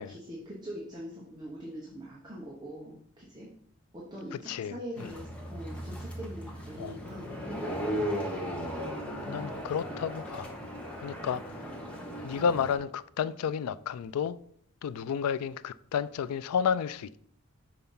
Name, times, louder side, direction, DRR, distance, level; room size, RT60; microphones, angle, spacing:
voice 1, 0.0-3.5 3.9-7.9, equal, 20° right, 1.0 m, -43 dB
voice 2, 4.3-5.1 6.8-7.0 9.3-10.5 11.0-11.6 12.2-14.4 14.8-17.2, left 7 dB, 85° left, 0.3 m, -31 dB
sound 1, 5.0-12.8, equal, 5° left, 0.9 m, -37 dB
5.7 x 4.3 x 5.5 m
head